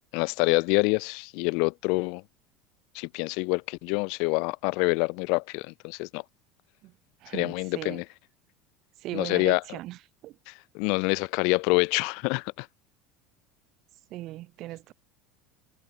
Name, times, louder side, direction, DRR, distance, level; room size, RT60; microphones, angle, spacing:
voice 1, 0.1-2.2 2.9-6.2 7.3-8.0 9.1-9.6 10.5-12.7, left 32 dB, 65° left, 3.2 m, -26 dB
voice 2, 7.2-8.0 9.0-10.0 10.2-10.3 14.1-14.9, right 16 dB, 50° right, 5.1 m, -38 dB
supercardioid pair, 125°, 0 cm